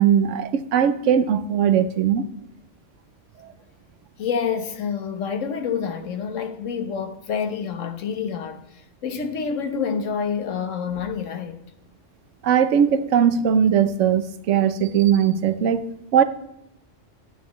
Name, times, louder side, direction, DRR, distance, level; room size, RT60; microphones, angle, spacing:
voice 1, 0.0-2.3 12.4-16.2, right 8 dB, 80° right, 1.0 m, -19 dB
voice 2, 4.2-8.6 9.0-11.6, left 6 dB, 85° left, 1.3 m, -27 dB
9.7 x 9.4 x 3.0 m
omnidirectional pair, 1.3 m